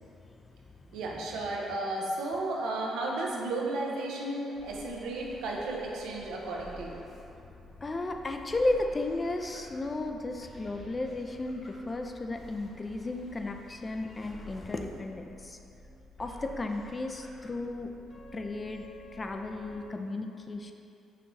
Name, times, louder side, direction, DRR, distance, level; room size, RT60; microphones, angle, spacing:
voice 1, 0.9-7.0, right 2 dB, 85° right, -1 dB, 0.6 m, -33 dB
sound 1, 4.5-19.9, left 1 dB, 45° left, 1.0 m, -51 dB
voice 2, 7.8-15.6 16.2-17.9 18.3-18.9 19.2-20.7, left 2 dB, 30° left, 4 dB, 0.3 m, -34 dB
5.6 x 3.0 x 2.6 m, 2.7 s
cardioid pair, 90°, 0 cm